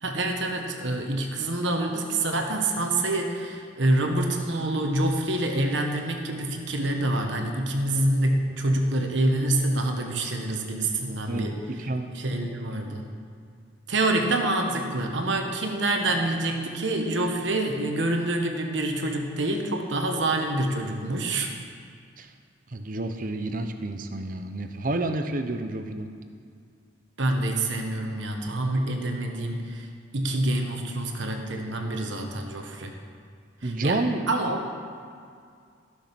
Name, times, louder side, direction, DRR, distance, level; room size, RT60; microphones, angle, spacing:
voice 1, 0.0-11.6 12.1-13.1 13.9-21.5 27.2-29.9 30.1-32.9 33.6-34.0 34.3-34.7, right 1 dB, 70° right, 3 dB, 1.3 m, -26 dB
voice 2, 11.8-12.7 22.2-22.3 22.7-26.1 33.6-34.2, right 2 dB, 45° right, 7 dB, 0.7 m, -30 dB
15.0 x 6.4 x 6.0 m, 2.2 s
head